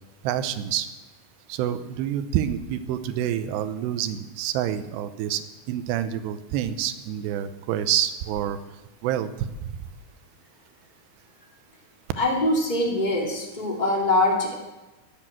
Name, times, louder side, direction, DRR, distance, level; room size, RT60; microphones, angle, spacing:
voice 1, 0.2-0.9 1.5-8.6 9.0-9.5, right 10 dB, 80° right, 11 dB, 2.8 m, -27 dB
voice 2, 12.2-14.5, left 1 dB, 15° left, -2 dB, 2.3 m, -23 dB
14.0 x 10.5 x 7.6 m, 1.1 s
omnidirectional pair, 5.1 m